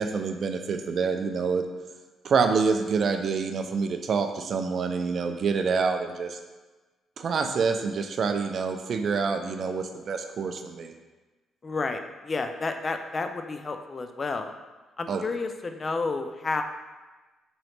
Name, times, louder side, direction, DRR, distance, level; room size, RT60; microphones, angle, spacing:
voice 1, 0.0-1.7 2.2-6.4 7.2-10.9 15.1-15.2, right 5 dB, 55° right, 6 dB, 0.3 m, -27 dB
voice 2, 11.6-14.5 15.0-16.6, left 3 dB, 35° left, 6 dB, 0.3 m, -31 dB
3.8 x 3.0 x 3.2 m, 1.2 s
cardioid pair, 90°, 0 cm